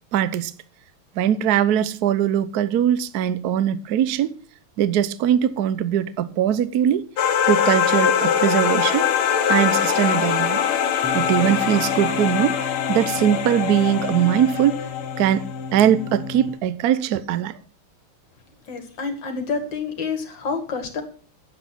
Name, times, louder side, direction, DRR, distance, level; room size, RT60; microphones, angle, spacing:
voice 1, 0.1-0.5 1.2-4.3 4.8-7.1 7.5-9.1 9.5-10.6 11.1-12.6 12.9-14.8 15.2-17.6, right 10 dB, 60° right, 1.0 m, -21 dB
sound 1, 7.2-15.8, left 8 dB, 70° left, 2.0 m, -22 dB
sound 2, 11.0-16.5, left 4 dB, 10° right, 0.6 m, -34 dB
voice 2, 18.7-21.0, left 4 dB, 55° left, 2.6 m, -28 dB
9.2 x 8.2 x 6.1 m
omnidirectional pair, 2.4 m